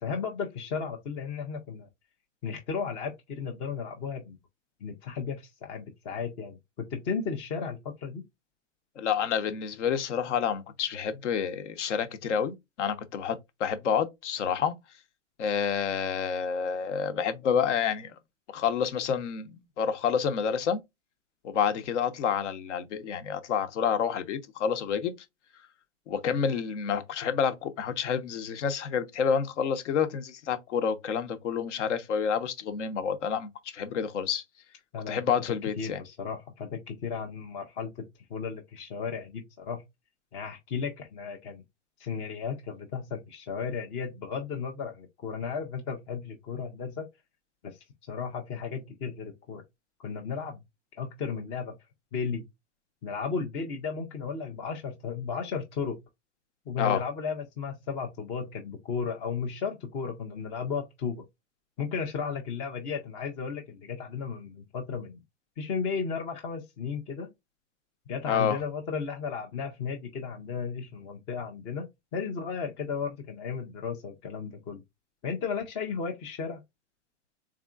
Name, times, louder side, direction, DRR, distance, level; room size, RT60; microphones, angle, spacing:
voice 1, 0.0-1.9 2.4-4.4 4.8-8.2 34.9-35.2 35.8-39.8 40.3-41.6 42.0-47.1 47.6-49.6 50.0-50.6 50.9-51.7 52.1-52.4 53.0-56.0 56.7-61.2 61.8-65.2 65.6-67.3 68.1-74.8 75.2-76.6, left 5 dB, 20° left, 0.3 m, -34 dB
voice 2, 9.0-14.7 15.4-18.1 18.5-20.8 21.4-25.1 26.1-34.4 35.1-36.0 56.8-57.0 68.3-68.6, left 7 dB, 70° left, 0.9 m, -29 dB
3.7 x 3.4 x 2.4 m
hypercardioid pair, 130°, 37 cm